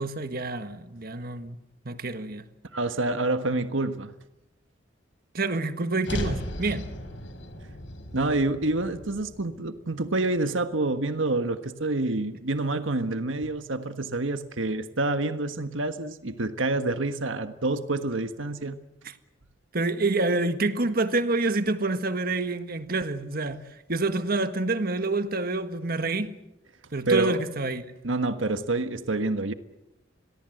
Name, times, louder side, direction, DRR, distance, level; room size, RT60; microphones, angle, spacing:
voice 1, 0.0-1.6 1.8-2.5 5.3-6.9 19.0-19.1 19.7-23.6 23.9-26.4 26.9-28.2, right 2 dB, 50° right, 1.6 m, -27 dB
voice 2, 2.7-4.1 8.1-18.8 27.1-27.4 28.0-29.5, right 2 dB, 85° right, 1.5 m, -27 dB
sound 1, 6.0-10.3, equal, 75° left, 5.2 m, -36 dB
29.0 x 22.0 x 7.9 m
head